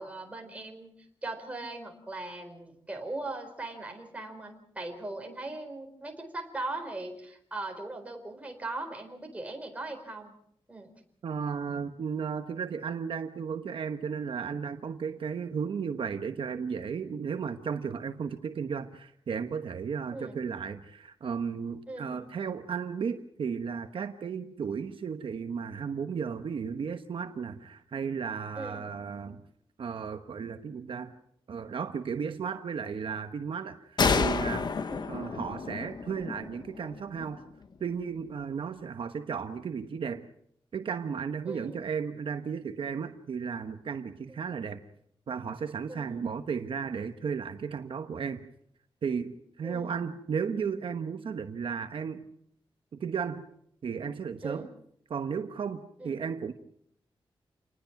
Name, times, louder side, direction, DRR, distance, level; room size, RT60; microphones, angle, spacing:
voice 1, 0.0-10.3 10.7-10.9 20.1-20.4 21.9-22.3 28.5-28.9 34.9-35.1 41.4-41.8 44.3-44.4 45.9-46.3 49.6-50.0 54.4-54.7 56.0-56.2, right 2 dB, 15° right, 3 dB, 4.3 m, -39 dB
voice 2, 11.2-29.4 29.8-31.1 31.5-34.7 35.1-37.4 37.8-40.3 40.7-44.8 45.3-48.5 49.0-52.2 52.9-53.4 53.8-54.7 55.1-56.5, right 6 dB, 70° right, 7 dB, 1.2 m, -34 dB
sound 1, 34.0-37.5, left 5 dB, 50° left, 1.1 m, -30 dB
28.0 x 20.0 x 6.0 m, 0.69 s
wide cardioid pair, 165°, 9 cm